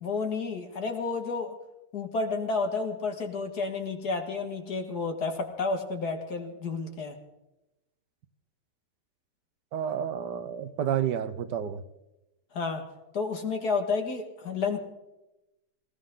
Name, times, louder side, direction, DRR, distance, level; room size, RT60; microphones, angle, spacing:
voice 1, 0.0-1.5 1.9-7.2 12.5-12.8 13.1-14.8, left 4 dB, 65° left, 5 dB, 2.5 m, -31 dB
voice 2, 9.7-11.8, right 9 dB, 80° right, 12 dB, 1.6 m, -30 dB
19.0 x 19.0 x 3.9 m, 0.95 s
omnidirectional pair, 1.8 m